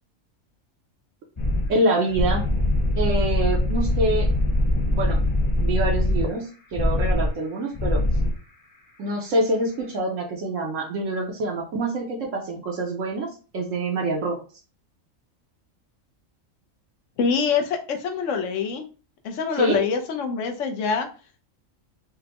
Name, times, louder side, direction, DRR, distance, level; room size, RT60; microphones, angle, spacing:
sound 1, 1.4-1.7 2.0-6.3 6.7-7.3 7.7-8.4, left 1 dB, 25° left, 0.9 m, -22 dB
voice 1, 1.7-2.4 3.0-4.3 4.9-5.2 5.6-8.0 9.0-14.4 19.6-19.8, right 1 dB, 75° right, 0 dB, 1.1 m, -26 dB
voice 2, 17.2-18.8 19.2-21.1, left 5 dB, 70° left, 5 dB, 1.1 m, -25 dB
5.2 x 2.1 x 2.9 m, 0.36 s
omnidirectional pair, 1.3 m